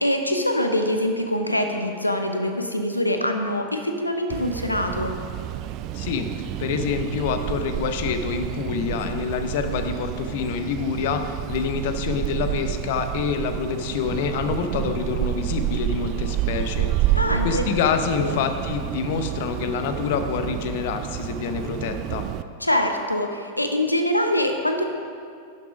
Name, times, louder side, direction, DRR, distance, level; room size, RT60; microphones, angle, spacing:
voice 1, 0.0-5.2 17.1-17.6 18.2-18.4 22.6-24.8, left 1 dB, 85° left, 5 dB, 0.8 m, -24 dB
sound 1, 4.3-22.4, right 13 dB, 40° right, 0.4 m, -29 dB
voice 2, 5.9-6.3 6.6-17.2 17.4-22.3, left 6 dB, 50° left, 7 dB, 0.8 m, -27 dB
11.0 x 7.0 x 5.1 m, 2.3 s
figure-of-eight pair, 90°, 0 cm